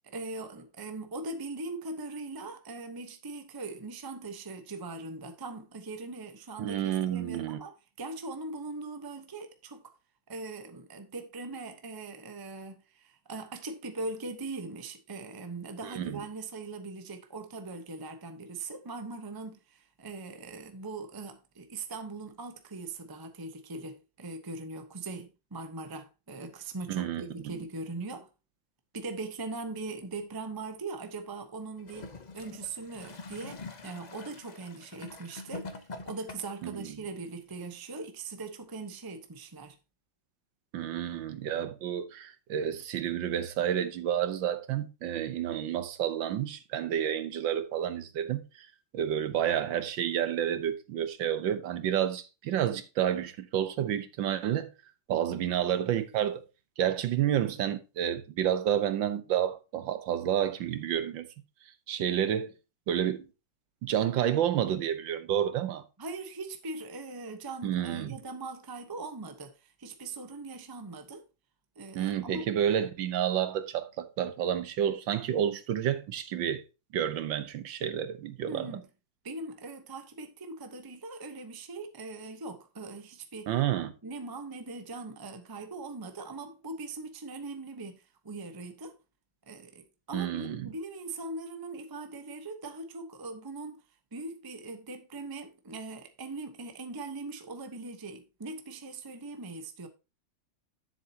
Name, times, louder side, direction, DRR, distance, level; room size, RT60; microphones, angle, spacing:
voice 1, 0.1-9.8 10.3-28.3 28.9-32.1 32.3-39.8 66.0-71.2 71.8-72.5 78.5-78.8 79.2-83.5 84.0-89.0 89.5-93.8 94.1-99.9, right 3 dB, 20° right, 0.6 m, -40 dB
voice 2, 6.6-7.6 15.8-16.2 26.9-27.6 36.6-37.0 40.7-48.7 48.9-54.7 55.1-56.4 56.8-61.3 61.9-62.5 62.9-63.3 63.8-65.8 67.6-68.1 71.9-76.6 76.9-78.7 83.5-83.9 90.1-90.7, right 10 dB, 75° right, 1.6 m, -30 dB
Gurgling / Toilet flush, 31.8-36.7 37.5-37.6, left 3 dB, 55° left, 0.4 m, -45 dB
10.5 x 7.5 x 2.8 m
omnidirectional pair, 2.2 m